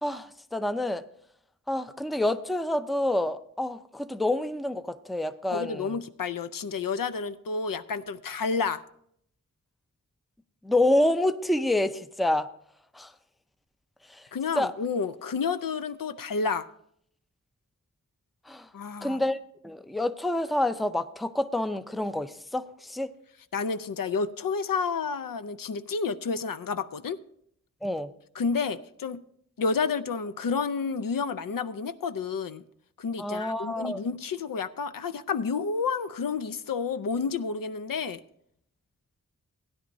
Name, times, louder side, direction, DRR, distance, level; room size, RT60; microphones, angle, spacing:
voice 1, 0.0-1.0 1.7-6.0 10.6-12.5 12.9-13.1 14.1-14.3 14.6-14.7 18.5-18.7 19.0-19.4 19.6-23.1 27.8-28.1 33.2-34.0, left 1 dB, ahead, 0.4 m, -28 dB
voice 2, 5.5-8.8 14.3-16.7 18.7-19.2 23.5-27.2 28.3-29.2 29.6-32.6 33.0-38.2, left 5 dB, 85° left, 0.6 m, -30 dB
16.5 x 10.0 x 2.6 m
wide cardioid pair, 85°, 33 cm